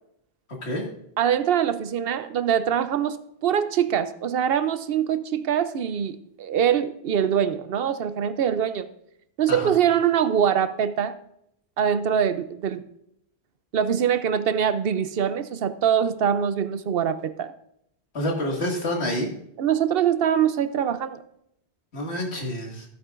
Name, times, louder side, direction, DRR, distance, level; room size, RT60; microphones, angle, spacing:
voice 1, 1.2-3.2 3.4-8.9 9.4-11.2 11.8-12.8 13.7-17.5 19.6-21.2, right 8 dB, 70° right, 0.8 m, -23 dB
voice 2, 18.1-19.3 21.9-22.9, left 1 dB, 85° left, 2.2 m, -28 dB
14.5 x 8.4 x 2.5 m
omnidirectional pair, 1.1 m